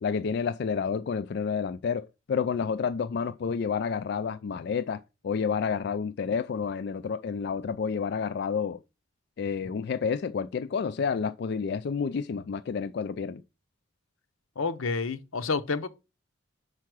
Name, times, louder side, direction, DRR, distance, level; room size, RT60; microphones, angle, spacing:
voice 1, 0.0-8.8 9.4-13.4, left 6 dB, 55° left, 0.3 m, -30 dB
voice 2, 14.6-15.9, left 4 dB, 80° left, 0.8 m, -29 dB
5.6 x 4.7 x 6.1 m
head